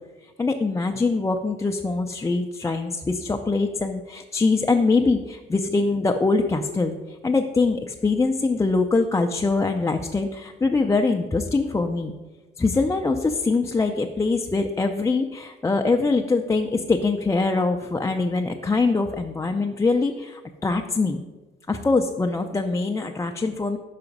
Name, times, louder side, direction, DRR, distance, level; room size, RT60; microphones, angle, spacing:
voice 1, 0.2-12.1 12.6-21.2 21.7-23.8, left 3 dB, 15° left, 3 dB, 0.4 m, -23 dB
5.8 x 4.8 x 5.2 m, 1.2 s
cardioid pair, 90°, 20 cm